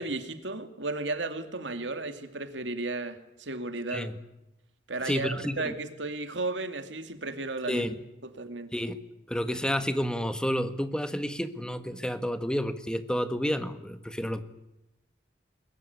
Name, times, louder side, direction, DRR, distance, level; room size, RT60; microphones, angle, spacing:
voice 1, 0.0-4.1 4.9-7.9 8.2-8.7, right 2 dB, 90° right, 8 dB, 2.5 m, -34 dB
voice 2, 5.0-5.7 7.7-7.9 8.7-9.0 9.3-14.4, equal, 5° left, 10 dB, 1.5 m, -30 dB
22.0 x 21.0 x 9.7 m, 0.91 s
head